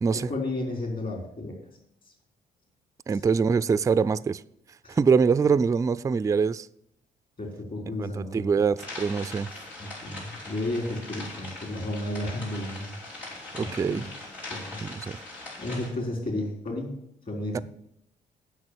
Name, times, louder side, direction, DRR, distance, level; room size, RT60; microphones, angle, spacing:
voice 1, 0.1-1.6 3.1-3.2 4.8-5.0 7.4-8.5 9.8-13.0 13.6-14.1 14.5-14.8 15.1-16.9 17.3-17.6, left 1 dB, 45° left, 3.9 m, -33 dB
voice 2, 3.1-4.4 4.9-6.7 8.0-9.5 13.6-14.0 14.8-15.2 17.5-17.6, right 5 dB, 15° right, 0.3 m, -24 dB
sound 1, 8.8-15.9, left 2 dB, 80° left, 4.3 m, -41 dB
8.0 x 5.9 x 8.0 m
hypercardioid pair, 45°, 21 cm